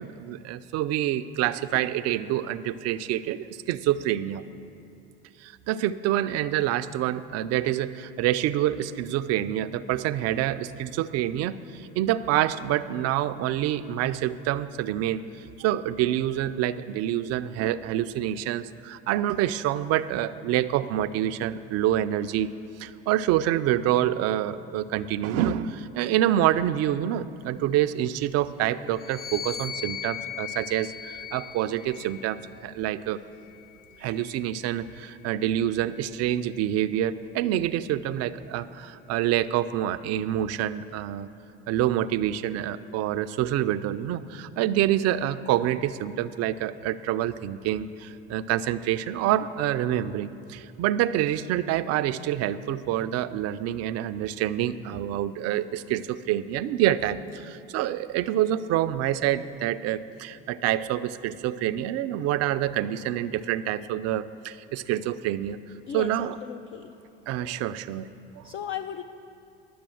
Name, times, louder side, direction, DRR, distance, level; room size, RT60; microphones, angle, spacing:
voice 1, 0.0-4.5 5.4-22.5 22.8-33.2 34.0-41.3 41.7-65.6 65.9-66.4 67.3-68.1 68.4-68.5, right 12 dB, 55° right, 12 dB, 0.5 m, -27 dB
sound 1, 28.9-32.5 33.4-35.0, left 9 dB, 70° left, 0.8 m, -39 dB
voice 2, 65.9-66.9 67.4-67.6 68.4-69.0, left 9 dB, 45° left, 7 dB, 0.5 m, -36 dB
11.0 x 6.7 x 7.7 m, 2.6 s
hypercardioid pair, 75°, 30 cm